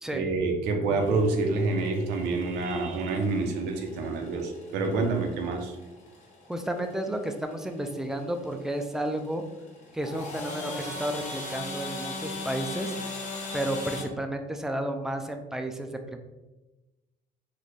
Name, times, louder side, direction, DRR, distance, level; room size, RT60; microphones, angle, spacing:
voice 1, 0.1-5.8, right 3 dB, 90° right, 4 dB, 0.6 m, -27 dB
sound 1, 1.0-14.0, left 2 dB, 45° left, 0.9 m, -40 dB
voice 2, 6.5-9.4 9.9-13.0 13.5-16.2, right 1 dB, 5° right, 5 dB, 0.3 m, -32 dB
3.9 x 2.2 x 3.1 m, 1.1 s
cardioid pair, 110°, 17 cm